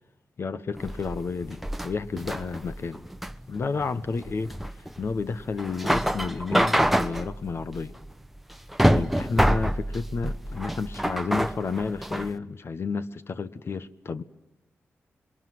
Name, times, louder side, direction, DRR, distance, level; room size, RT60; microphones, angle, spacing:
voice 1, 0.4-3.0 3.5-4.5 5.0-7.9 8.8-14.2, left 4 dB, 55° left, 1.2 m, -31 dB
sound 1, 0.8-12.3, equal, 5° right, 1.0 m, -27 dB
27.5 x 22.0 x 9.5 m
cardioid pair, 75°, 5 cm